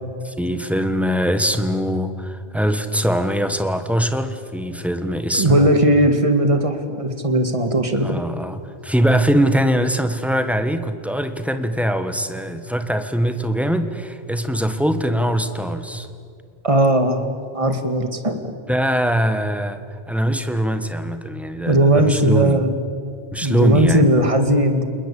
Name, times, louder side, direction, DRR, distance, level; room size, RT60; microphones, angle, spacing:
voice 1, 0.2-5.8 8.0-16.1 18.7-22.6 23.3-24.1, equal, ahead, 9 dB, 1.4 m, -22 dB
voice 2, 5.3-8.2 16.6-17.3 17.5-18.5 21.7-22.8 23.4-24.8, right 1 dB, 30° right, 7 dB, 2.0 m, -18 dB
29.5 x 21.0 x 8.5 m, 2.3 s
omnidirectional pair, 1.1 m